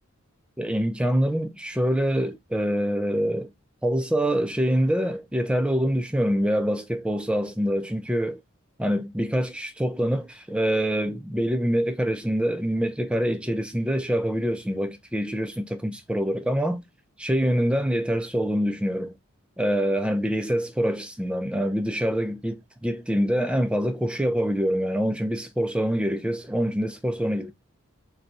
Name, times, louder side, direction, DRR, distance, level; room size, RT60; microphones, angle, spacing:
voice 1, 0.6-3.5 3.8-8.4 8.8-16.8 17.2-19.1 19.6-27.5, equal, 5° right, 0.3 m, -25 dB
2.6 x 2.3 x 4.0 m
head